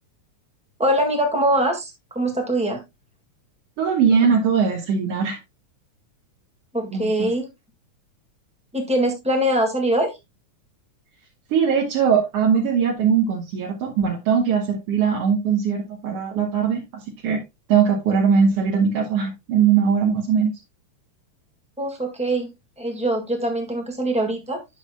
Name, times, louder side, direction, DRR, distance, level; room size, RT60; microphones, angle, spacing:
voice 1, 0.8-2.8 6.7-7.5 8.7-10.1 21.8-22.5 22.8-24.6, right 1 dB, 5° right, 0.5 m, -23 dB
voice 2, 3.8-5.4 6.9-7.3 11.5-17.4 17.7-20.5, right 6 dB, 60° right, 2.1 m, -20 dB
10.5 x 6.9 x 2.2 m
omnidirectional pair, 3.4 m